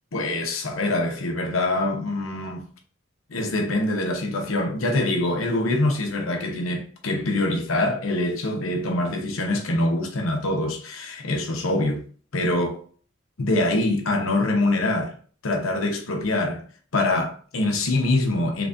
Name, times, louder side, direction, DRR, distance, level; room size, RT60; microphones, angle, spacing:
voice 1, 0.1-2.6 3.3-12.0 12.3-12.8 13.4-15.1 15.4-16.6 16.9-18.7, left 2 dB, 90° left, 0.8 m, -24 dB
3.5 x 3.3 x 2.5 m
head